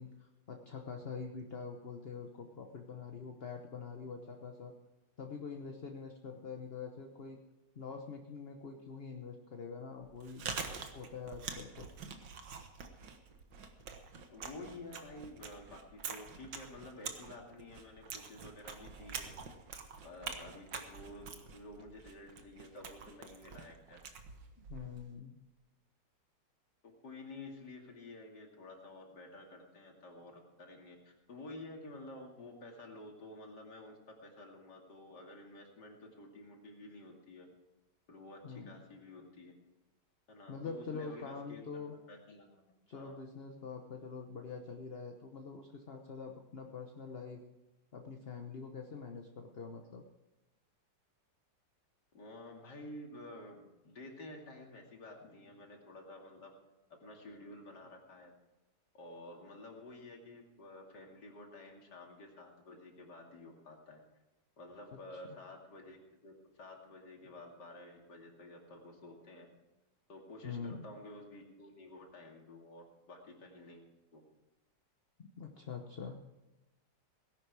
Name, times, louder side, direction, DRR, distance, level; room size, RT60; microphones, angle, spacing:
voice 1, 0.0-4.7 5.2-7.4 7.7-10.4 10.9-11.9 24.6-25.4 38.4-38.8 40.5-42.0 42.9-47.4 47.9-50.0 65.1-65.4 70.4-70.8 75.4-76.2, left 5 dB, 40° left, 4 dB, 1.0 m, -45 dB
Chewing mastication, 10.0-25.1, right 5 dB, 85° right, 2.0 m, -46 dB
voice 2, 14.3-19.3 20.0-24.0 26.8-37.5 38.1-39.5 40.3-43.2 52.1-56.5 56.9-58.3 58.9-64.0 64.6-66.0 66.2-69.5 70.1-73.8 74.1-74.2, left 2 dB, 65° left, 1 dB, 3.1 m, -51 dB
18.5 x 11.0 x 4.8 m, 1.1 s
omnidirectional pair, 1.9 m